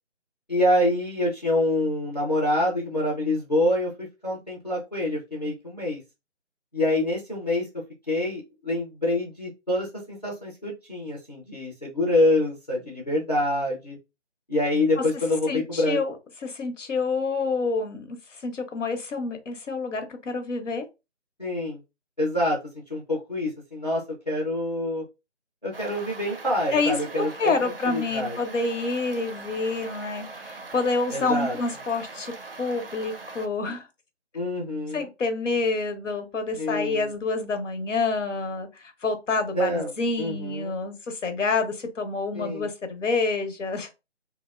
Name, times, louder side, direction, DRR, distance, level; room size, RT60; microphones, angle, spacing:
voice 1, 0.5-6.0 6.7-7.7 8.1-14.0 14.5-16.0 21.4-21.8 22.2-22.6 22.9-25.0 25.6-27.5 27.9-28.4 31.1-31.6 34.3-35.1 36.6-37.1 39.5-39.9 40.2-40.8 42.3-42.7, left 1 dB, 35° left, 0.5 m, -26 dB
voice 2, 15.5-16.2 16.4-18.2 18.4-20.9 26.7-32.3 32.6-33.9 34.9-43.9, left 3 dB, 85° left, 0.9 m, -28 dB
sound 1, 25.7-33.5, right 3 dB, 50° right, 0.4 m, -41 dB
2.6 x 2.1 x 2.3 m
figure-of-eight pair, 175°, 37 cm